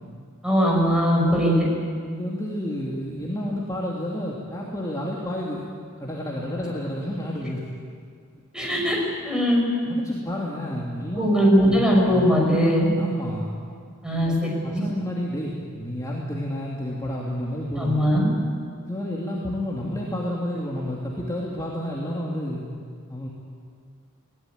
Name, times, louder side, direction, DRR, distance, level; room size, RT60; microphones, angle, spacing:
voice 1, 0.4-1.7 8.5-9.0 9.2-9.6 11.2-12.9 14.0-14.8 17.8-18.3, equal, 5° right, -2 dB, 6.0 m, -20 dB
voice 2, 2.1-5.6 6.0-7.6 9.9-11.3 11.6-11.8 13.0-13.5 14.1-18.0 18.9-22.6 23.1-23.3, left 1 dB, 15° left, -4 dB, 2.6 m, -30 dB
21.0 x 18.0 x 9.4 m, 2.1 s
head